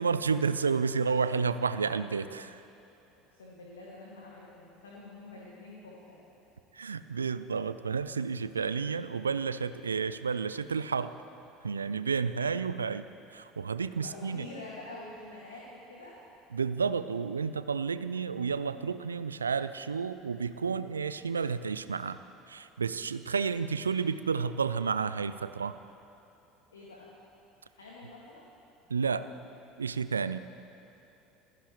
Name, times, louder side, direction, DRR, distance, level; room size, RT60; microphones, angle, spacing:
voice 1, 0.0-2.6 6.7-11.1 11.6-13.1 13.3-14.5 16.5-22.2 22.5-25.8 28.9-29.3 29.8-30.4, right 5 dB, 85° right, 13 dB, 0.4 m, -31 dB
voice 2, 3.3-6.2 14.0-16.2 26.7-27.1 27.7-28.5, left 2 dB, 80° left, -4 dB, 2.1 m, -47 dB
27.5 x 16.0 x 3.2 m, 2.9 s
figure-of-eight pair, 70°, 0 cm